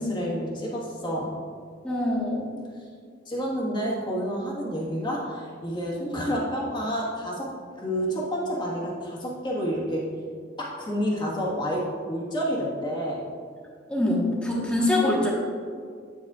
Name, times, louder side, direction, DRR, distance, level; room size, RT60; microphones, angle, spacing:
voice 1, 0.0-1.3 3.3-7.5 7.8-10.1 10.6-13.2, equal, 25° left, -4 dB, 1.5 m, -29 dB
voice 2, 1.8-2.5 13.9-15.3, left 1 dB, 5° left, -5 dB, 1.4 m, -24 dB
9.2 x 7.6 x 2.4 m, 2.1 s
head